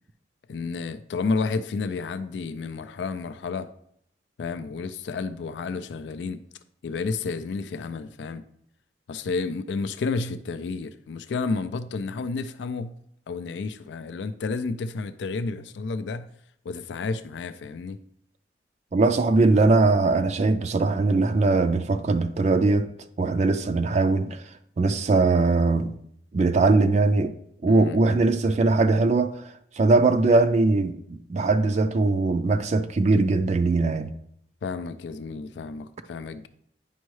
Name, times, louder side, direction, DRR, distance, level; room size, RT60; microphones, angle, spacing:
voice 1, 0.5-3.7 4.4-6.4 6.8-8.4 9.1-12.9 13.3-16.3 16.6-18.0 27.7-28.0 34.6-36.5, left 4 dB, 85° left, 0.4 m, -31 dB
voice 2, 18.9-22.9 23.2-24.4 24.8-26.0 26.3-27.3 27.6-29.4 29.8-34.1, right 3 dB, 40° right, 0.3 m, -21 dB
9.2 x 5.3 x 3.1 m
head